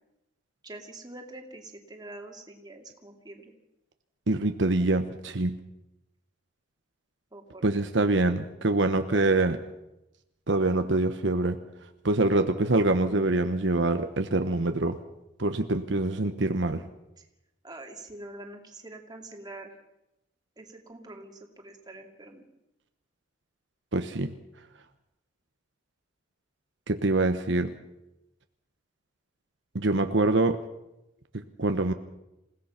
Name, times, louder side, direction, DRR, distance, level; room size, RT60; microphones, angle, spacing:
voice 1, 0.6-3.5 7.3-7.8 17.2-17.3 17.6-19.7 20.6-22.5, right 2 dB, 20° right, 2 dB, 2.6 m, -45 dB
voice 2, 4.3-5.6 7.6-9.6 10.5-11.6 12.0-15.0 15.4-16.8 23.9-24.3 26.9-27.7 29.7-30.6 31.6-31.9, right 2 dB, 70° right, 7 dB, 1.1 m, -25 dB
28.0 x 17.0 x 5.9 m, 0.92 s
head